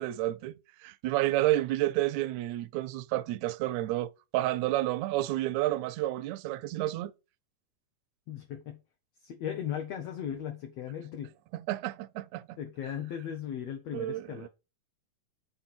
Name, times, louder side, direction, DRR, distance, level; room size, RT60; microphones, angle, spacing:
voice 1, 0.0-7.1 11.5-12.6 13.9-14.5, right 15 dB, 80° right, 1.7 m, -30 dB
voice 2, 8.3-8.8 9.2-11.3 12.6-14.5, left 9 dB, 65° left, 1.9 m, -37 dB
7.9 x 4.0 x 4.3 m
omnidirectional pair, 3.6 m